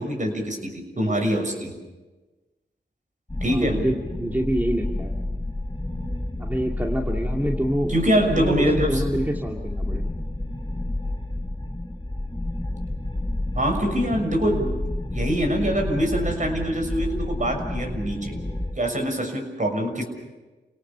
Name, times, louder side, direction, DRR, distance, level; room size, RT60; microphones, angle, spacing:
voice 1, 0.0-1.7 3.4-3.8 7.9-9.0 13.5-14.7 15.1-18.4 18.8-20.0, equal, 40° right, 4 dB, 6.5 m, -24 dB
sound 1, 3.3-18.7, left 1 dB, 25° left, 5.6 m, -30 dB
voice 2, 3.5-5.1 6.4-7.9 8.3-10.1 14.1-14.2, equal, 10° right, 0 dB, 2.6 m, -26 dB
29.5 x 18.0 x 7.0 m, 1.2 s
cardioid pair, 45°, 19 cm